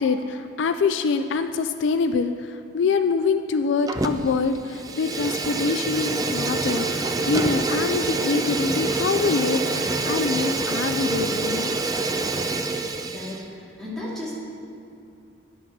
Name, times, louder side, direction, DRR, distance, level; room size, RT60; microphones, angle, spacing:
voice 1, 0.0-12.2, left 4 dB, 70° left, 9 dB, 0.4 m, -25 dB
Fire, 3.9-4.4 4.7-13.4, right 3 dB, 20° right, 0.4 m, -26 dB
voice 2, 13.0-14.3, left 1 dB, ahead, -9 dB, 2.6 m, -35 dB
10.5 x 6.1 x 6.0 m, 2.7 s
head